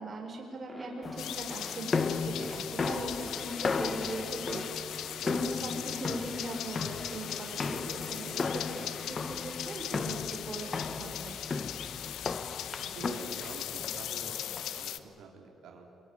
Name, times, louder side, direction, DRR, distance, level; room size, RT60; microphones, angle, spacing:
voice 1, 0.0-4.8 5.2-11.4, right 2 dB, 35° right, 2 dB, 4.7 m, -40 dB
sound 1, 0.7-8.5, equal, 5° right, 5.3 m, -50 dB
sound 2, 1.0-14.9, left 4 dB, 30° left, 1.0 m, -36 dB
sound 3, 1.2-15.0, left 11 dB, 80° left, 1.0 m, -39 dB
voice 2, 12.8-14.4 14.7-15.9, right 5 dB, 80° right, 0 dB, 3.7 m, -47 dB
25.5 x 22.0 x 9.9 m, 2.9 s
cardioid pair, 130°, 0 cm